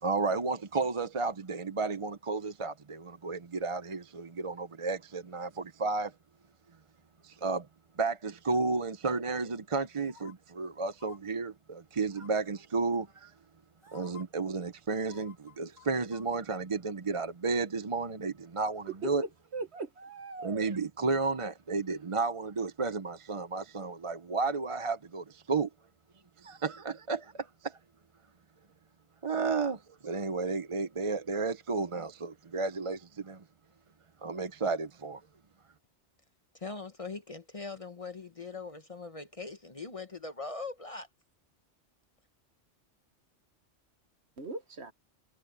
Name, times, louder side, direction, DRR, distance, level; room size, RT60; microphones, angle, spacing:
voice 1, 0.0-6.1 7.2-7.7 8.0-13.3 13.9-19.2 20.4-25.7 26.4-27.8 29.2-33.4 34.2-35.2, right 4 dB, 30° right, 0.7 m, -32 dB
sound 1, 10.0-10.3 10.9-11.2 12.1-12.5 13.4-13.5 13.8-14.2 15.0-16.3 16.6-16.7, left 8 dB, 50° left, 5.5 m, -54 dB
voice 2, 19.0-20.7 44.4-44.9, right 3 dB, 65° right, 1.7 m, -39 dB
voice 3, 36.5-41.1, left 3 dB, 30° left, 0.9 m, -41 dB
omnidirectional pair, 1.2 m